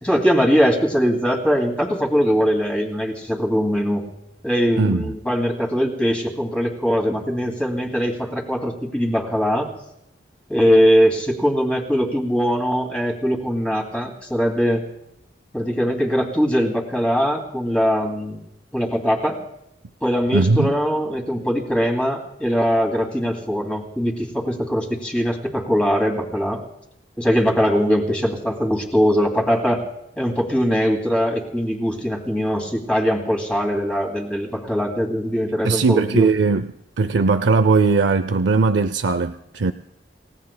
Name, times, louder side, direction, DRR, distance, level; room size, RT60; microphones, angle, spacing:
voice 1, 0.0-4.0 4.4-9.7 10.5-14.8 15.5-18.4 18.7-19.4 20.0-26.6 27.2-29.8 30.2-36.3, equal, 5° left, 0 dB, 2.3 m, -21 dB
voice 2, 4.8-5.1 20.3-20.7 35.6-36.7 37.0-39.7, right 4 dB, 85° right, 10 dB, 0.5 m, -18 dB
28.5 x 17.0 x 2.2 m, 0.80 s
head